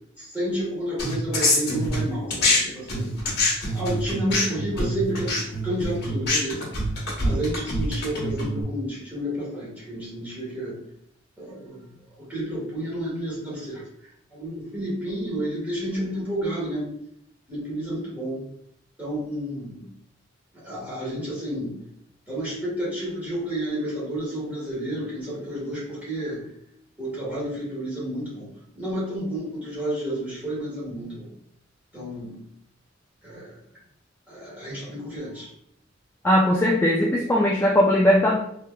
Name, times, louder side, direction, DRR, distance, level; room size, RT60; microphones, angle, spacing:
voice 1, 0.2-3.2 3.7-6.7 7.2-10.8 11.4-13.8 14.3-16.9 17.5-18.4 19.0-19.9 20.5-21.8 22.3-26.5 27.0-31.3 31.9-32.4 33.2-33.6 34.3-35.5, right 1 dB, 10° right, -8 dB, 1.4 m, -31 dB
sound 1, 1.0-2.6 2.9-8.6, left 1 dB, 60° left, 1.0 m, -25 dB
voice 2, 36.2-38.4, left 1 dB, 10° left, -3 dB, 0.3 m, -19 dB
3.4 x 2.7 x 2.2 m, 0.71 s
head